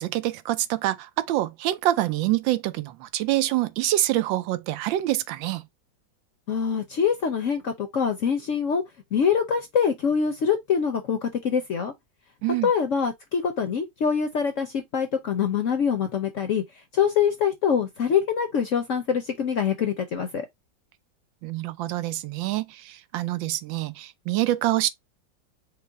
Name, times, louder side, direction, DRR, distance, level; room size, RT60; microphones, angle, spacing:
voice 1, 0.0-5.6 12.4-12.7 21.4-24.9, right 15 dB, 85° right, 1.3 m, -26 dB
voice 2, 6.5-8.8 9.1-11.9 12.6-16.6 16.9-20.5, left 7 dB, 60° left, 0.8 m, -24 dB
5.3 x 2.1 x 4.5 m
omnidirectional pair, 2.0 m